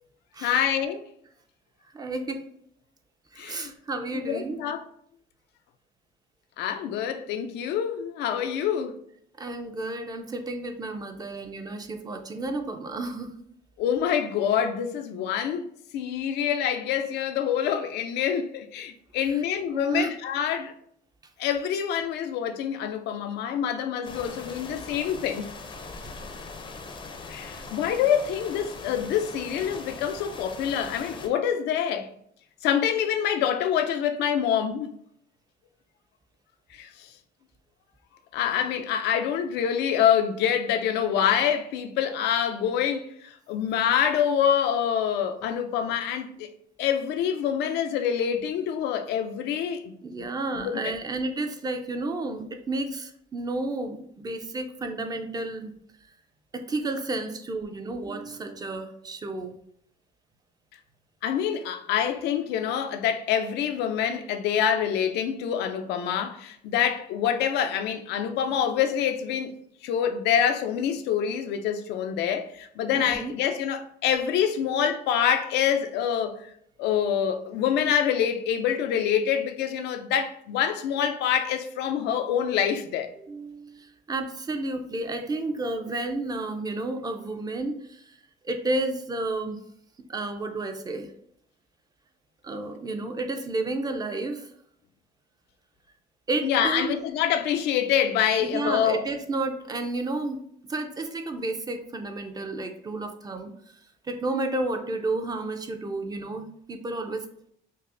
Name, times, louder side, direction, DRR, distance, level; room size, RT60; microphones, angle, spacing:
voice 1, 0.4-1.1 3.4-3.7 4.1-4.8 6.6-8.9 13.8-20.7 21.4-25.4 27.3-32.1 32.6-34.9 36.7-37.1 38.3-46.5 46.8-50.0 50.5-50.9 61.2-69.5 69.8-76.4 76.8-83.1 96.4-99.0, left 9 dB, 80° left, 0.4 m, -26 dB
voice 2, 1.9-2.4 3.3-4.6 9.4-13.3 19.7-20.1 50.0-55.7 56.5-59.6 72.9-73.3 83.2-88.2 88.4-89.6 90.0-91.1 92.4-94.5 96.3-97.0 98.4-100.4 100.7-103.5 104.0-107.3, right 2 dB, 25° right, 0.4 m, -31 dB
sound 1, 24.0-31.3, left 4 dB, 30° left, 0.5 m, -41 dB
5.3 x 2.0 x 2.5 m
cardioid pair, 110°, 17 cm